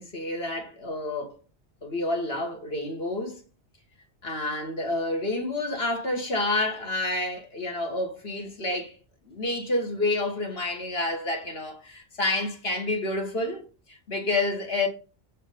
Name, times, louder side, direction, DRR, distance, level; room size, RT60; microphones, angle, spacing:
voice 1, 0.0-1.4 1.8-3.4 4.2-9.0 9.3-13.6 13.9-14.9, left 2 dB, 60° left, 2.1 m, -29 dB
6.5 x 5.6 x 5.2 m
omnidirectional pair, 1.2 m